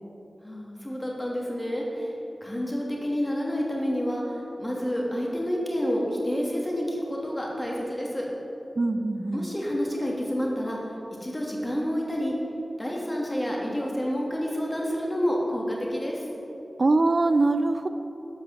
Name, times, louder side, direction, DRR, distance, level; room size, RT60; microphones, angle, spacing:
voice 1, 0.4-2.1 2.4-8.2 9.3-10.8 11.2-12.3 12.8-16.2, equal, 20° left, -3 dB, 2.8 m, -29 dB
voice 2, 8.8-9.5 16.8-17.9, right 2 dB, 55° right, 9 dB, 0.4 m, -23 dB
11.0 x 5.7 x 7.6 m, 3.0 s
cardioid pair, 50°, 0 cm